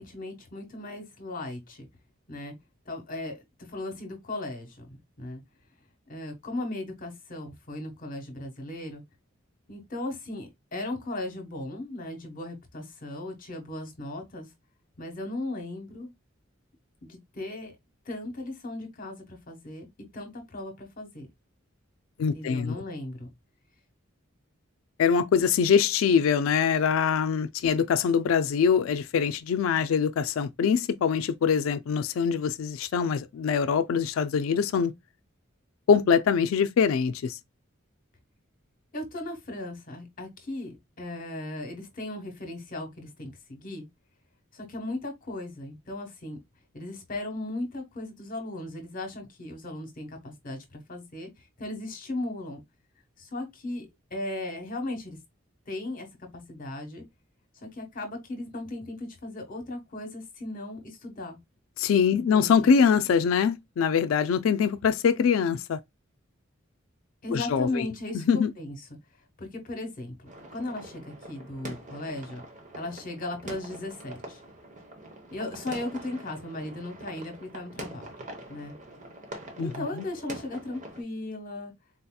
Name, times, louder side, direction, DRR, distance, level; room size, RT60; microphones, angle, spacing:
voice 1, 0.0-1.9 2.3-2.5 2.8-4.9 5.2-5.4 6.1-9.0 9.7-14.5 15.0-16.1 17.0-17.7 18.0-19.9 20.1-21.3 22.2-23.3 38.9-43.9 44.5-46.4 46.7-52.6 53.2-55.2 55.7-56.1 56.3-57.0 57.6-61.4 62.1-62.7 67.2-68.8 69.4-70.1 70.5-72.4 72.7-74.4 75.3-78.1 78.5-78.8 79.6-81.7, left 2 dB, 45° left, 1.1 m, -37 dB
voice 2, 22.2-22.8 25.0-34.9 35.9-37.4 61.8-65.8 67.3-67.9 68.1-68.5 79.6-80.0, left 6 dB, 75° left, 0.3 m, -23 dB
sound 1, 70.3-81.0, right 1 dB, 40° right, 0.9 m, -44 dB
4.0 x 2.8 x 2.2 m
head